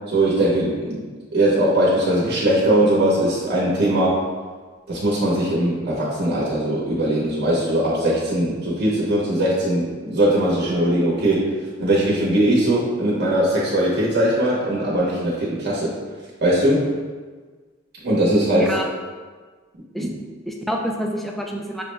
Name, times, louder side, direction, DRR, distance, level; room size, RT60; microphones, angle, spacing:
voice 1, 0.1-1.0 1.3-4.2 4.9-15.9 16.4-16.9 18.0-18.8 20.0-20.1, right 1 dB, 55° right, -6 dB, 0.9 m, -20 dB
voice 2, 18.5-18.9 19.9-20.1 20.5-21.8, equal, ahead, 0 dB, 0.3 m, -27 dB
5.9 x 2.1 x 3.3 m, 1.4 s
head